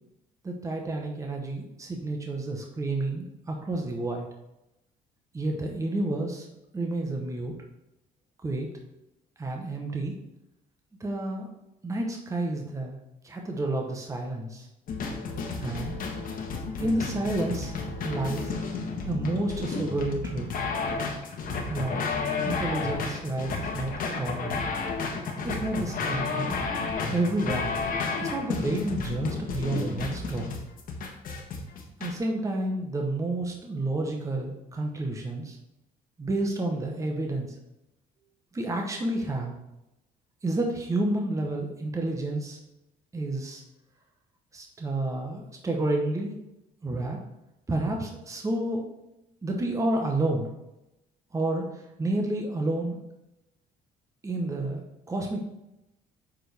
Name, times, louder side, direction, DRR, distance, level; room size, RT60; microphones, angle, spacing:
voice 1, 0.4-4.3 5.3-6.5 6.7-7.5 8.4-8.7 9.4-10.1 11.0-11.5 11.8-12.9 13.2-14.7 15.6-15.9 16.8-17.7 18.0-18.5 19.0-20.5 21.7-24.6 25.4-26.6 27.1-27.7 28.2-30.6 32.0-35.6 36.2-37.5 38.5-39.5 40.4-42.6 43.1-43.6 44.5-46.3 46.8-47.2 47.7-48.9 49.4-50.5 51.3-51.7 52.0-53.0 54.2-54.8 55.1-55.4, right 2 dB, 20° right, 1 dB, 1.0 m, -30 dB
sound 1, 14.9-32.1, left 4 dB, 55° left, 1.3 m, -32 dB
7.2 x 4.6 x 3.4 m, 0.89 s
cardioid pair, 110°, 17 cm